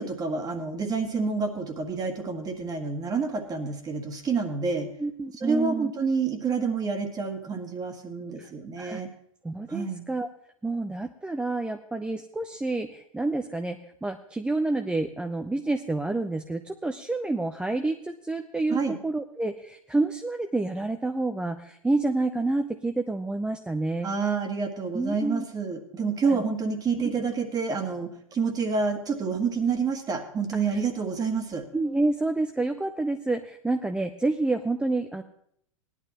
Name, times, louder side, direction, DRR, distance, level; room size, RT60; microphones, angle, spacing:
voice 1, 0.0-4.9 5.4-9.1 9.7-10.0 18.7-19.0 24.0-31.7, right 5 dB, 20° right, 6 dB, 1.7 m, -28 dB
voice 2, 5.0-5.9 8.4-8.5 8.8-9.0 9.4-10.3 10.6-24.1 24.9-25.4 26.2-26.4 30.7-30.8 31.7-35.2, right 2 dB, 5° right, 6 dB, 0.5 m, -28 dB
18.0 x 11.5 x 3.0 m, 0.68 s
figure-of-eight pair, 100°, 17 cm